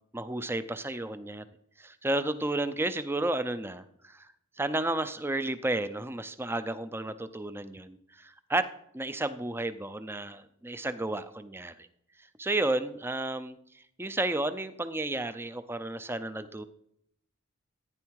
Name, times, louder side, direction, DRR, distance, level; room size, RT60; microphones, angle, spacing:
voice 1, 0.1-1.4 1.8-4.3 4.6-8.7 8.9-11.9 12.4-16.6, right 2 dB, 10° right, 12 dB, 0.5 m, -32 dB
14.0 x 9.7 x 4.7 m, 0.75 s
head